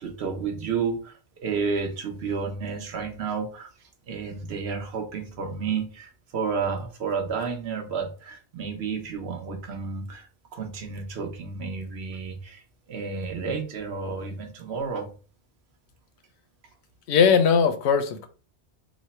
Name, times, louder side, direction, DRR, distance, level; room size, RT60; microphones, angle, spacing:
voice 1, 0.0-3.7 4.1-15.1, right 5 dB, 75° right, 3 dB, 1.0 m, -31 dB
voice 2, 17.1-18.3, left 6 dB, 85° left, 8 dB, 0.9 m, -19 dB
3.1 x 2.0 x 4.1 m, 0.37 s
omnidirectional pair, 1.1 m